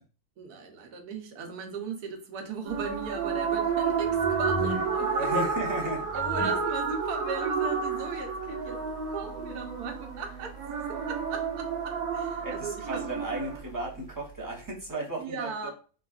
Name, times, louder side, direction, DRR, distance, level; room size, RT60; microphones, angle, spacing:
voice 1, 0.4-5.5 6.1-10.6 10.9-13.0 15.2-15.7, right 5 dB, 85° right, 4 dB, 1.3 m, -37 dB
sound 1, 2.6-13.6, right 5 dB, 70° right, 1.1 m, -30 dB
sound 2, 2.7-14.9, equal, 80° left, 1.1 m, -43 dB
voice 2, 5.2-6.5 12.4-15.7, right 2 dB, 30° right, -3 dB, 0.3 m, -35 dB
3.5 x 2.3 x 2.3 m, 0.38 s
omnidirectional pair, 1.6 m